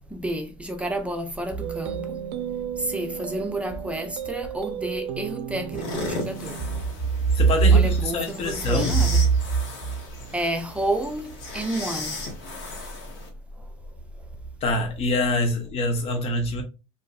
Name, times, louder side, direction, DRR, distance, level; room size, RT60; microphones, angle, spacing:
voice 1, 0.1-2.2 2.8-6.6 7.7-9.2 10.3-12.2 13.6-13.7, right 3 dB, 10° right, 0.5 m, -27 dB
sound 1, 1.6-6.8, right 9 dB, 85° right, 0.4 m, -34 dB
sound 2, 5.7-13.3, left 2 dB, 80° left, 1.0 m, -36 dB
voice 2, 7.3-9.1 14.6-16.6, left 2 dB, 40° left, 0.8 m, -25 dB
2.6 x 2.3 x 2.3 m
supercardioid pair, 110°, 16 cm